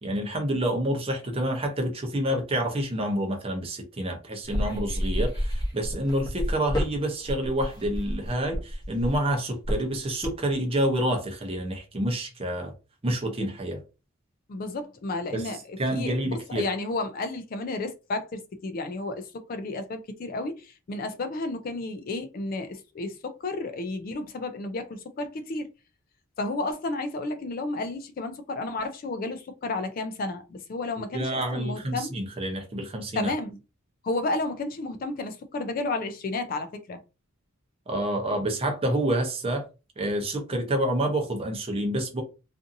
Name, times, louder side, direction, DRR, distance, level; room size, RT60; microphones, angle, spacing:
voice 1, 0.0-12.7 13.0-13.8 15.3-15.5 15.8-16.7 31.1-33.3 37.9-39.7 40.0-42.2, right 1 dB, 30° right, 0.6 m, -28 dB
sound 1, 4.5-10.5, equal, 20° left, 0.8 m, -30 dB
voice 2, 14.5-25.7 26.4-32.1 33.2-33.6 34.0-37.0, left 2 dB, 45° left, 0.3 m, -32 dB
2.6 x 2.5 x 2.5 m
head